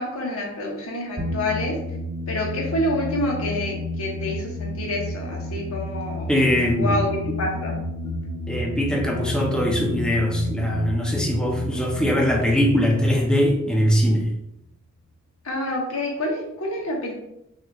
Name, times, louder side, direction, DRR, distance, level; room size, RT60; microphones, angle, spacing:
voice 1, 0.0-1.8 2.3-6.3 6.7-7.7 15.4-17.1, left 1 dB, 85° left, -1 dB, 1.2 m, -27 dB
sound 1, 1.2-14.4, left 1 dB, 75° right, 1.1 m, -31 dB
voice 2, 6.3-7.0 8.5-14.3, equal, 5° left, -1 dB, 0.5 m, -21 dB
6.2 x 2.8 x 2.4 m, 0.82 s
head